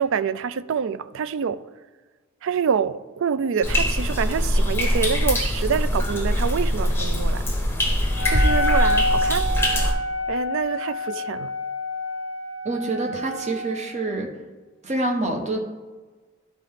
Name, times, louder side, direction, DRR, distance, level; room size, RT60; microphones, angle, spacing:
voice 1, 0.0-1.6 2.4-7.5 8.3-9.5 10.3-11.5, right 6 dB, 60° right, 0.4 m, -26 dB
sound 1, 3.6-9.9, left 1 dB, 10° left, 0.9 m, -22 dB
Wind instrument woodwind instrument, 8.1-13.9, left 1 dB, 10° right, 1.5 m, -27 dB
voice 2, 12.6-14.3 14.8-15.6, right 2 dB, 35° right, 1.1 m, -26 dB
11.5 x 4.4 x 3.7 m
head